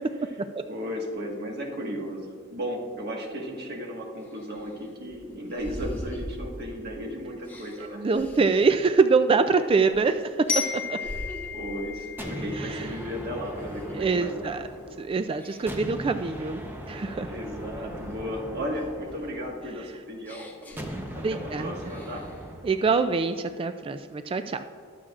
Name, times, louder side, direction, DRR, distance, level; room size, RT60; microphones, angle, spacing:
voice 1, 0.7-8.1 11.1-11.2 11.5-14.6 17.3-20.8 21.1-22.3, equal, 50° right, 0 dB, 1.6 m, -35 dB
sound 1, 3.6-3.7 4.2-7.0 7.4-10.1 10.5-11.7 12.2-12.5 12.8-14.1 14.5-14.9 15.4-16.0 16.5-18.4 18.8-21.5 21.8-22.5, equal, 10° left, 1.2 m, -43 dB
voice 2, 8.0-10.1 10.9-11.0 12.6-12.9 13.9-14.6 15.0-17.3 21.2-21.7 22.6-24.6, right 4 dB, 25° right, 9 dB, 0.3 m, -24 dB
Glockenspiel, 10.5-13.4, left 6 dB, 60° left, 2.2 m, -33 dB
sound 2, 12.2-15.2 15.7-19.9 20.8-22.9, right 1 dB, 10° right, 0.8 m, -39 dB
22.0 x 7.4 x 2.5 m, 2.2 s
head